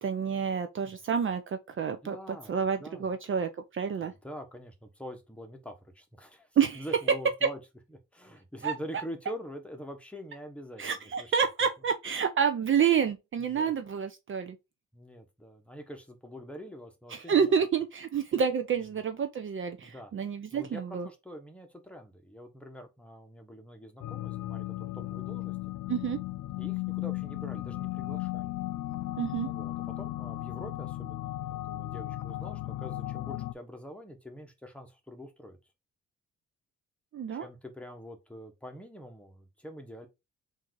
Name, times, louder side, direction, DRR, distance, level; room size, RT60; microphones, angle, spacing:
voice 1, 0.0-4.1 6.6-6.8 8.6-8.7 10.8-14.6 17.1-21.1 25.9-26.2 29.2-29.5 37.1-37.5, right 7 dB, 40° right, 0.5 m, -29 dB
voice 2, 2.0-3.1 4.0-6.5 6.7-7.6 8.1-11.3 13.4-13.7 14.9-17.5 19.8-20.1 20.5-25.6 26.6-28.5 29.4-35.6 37.3-40.1, equal, 5° left, 1.1 m, -45 dB
sound 1, 24.0-33.5, left 16 dB, 85° left, 0.5 m, -36 dB
3.7 x 2.7 x 4.6 m
cardioid pair, 90°, 30 cm